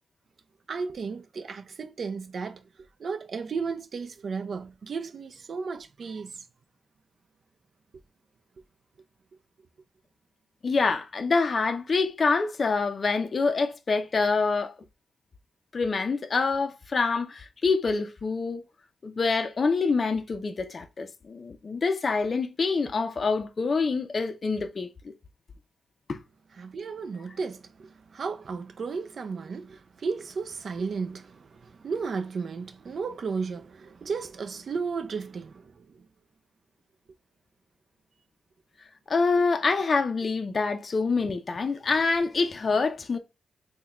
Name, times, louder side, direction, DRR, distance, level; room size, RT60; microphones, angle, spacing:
voice 1, 0.7-2.6 3.0-6.4 26.5-36.1, right 5 dB, 55° right, 0.4 m, -34 dB
voice 2, 10.6-14.7 15.7-18.6 19.0-24.9 26.1-26.2 39.1-43.2, left 4 dB, 40° left, 0.4 m, -26 dB
3.5 x 2.1 x 2.9 m
cardioid pair, 100°, 0 cm